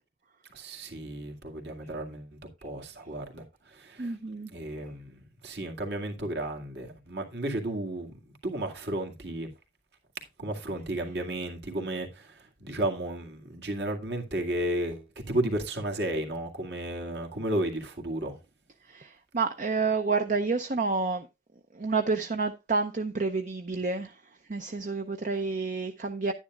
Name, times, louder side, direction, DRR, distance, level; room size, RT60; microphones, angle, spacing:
voice 1, 0.5-2.3 2.6-3.4 3.7-4.2 4.5-8.2 8.4-9.5 10.4-18.4, right 1 dB, 65° right, 2.1 m, -33 dB
voice 2, 4.0-4.5 18.8-21.3 21.7-24.2 24.5-26.3, right 4 dB, 45° right, 0.6 m, -29 dB
11.0 x 10.0 x 2.4 m
head